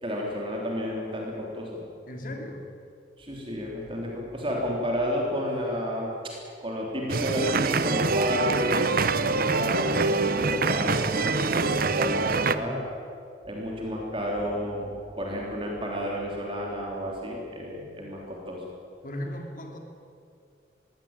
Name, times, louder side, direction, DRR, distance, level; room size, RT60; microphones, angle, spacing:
voice 1, 0.0-1.8 3.2-6.3 6.6-12.8 13.4-18.6, equal, 30° right, -2 dB, 3.5 m, -31 dB
voice 2, 2.1-2.7 9.1-9.3 12.6-12.9 19.0-19.8, left 1 dB, 45° left, 3 dB, 3.1 m, -37 dB
Mexican Dance-Street Fair, 7.1-12.6, right 3 dB, 50° right, 0.9 m, -25 dB
22.0 x 17.0 x 9.0 m, 2.4 s
head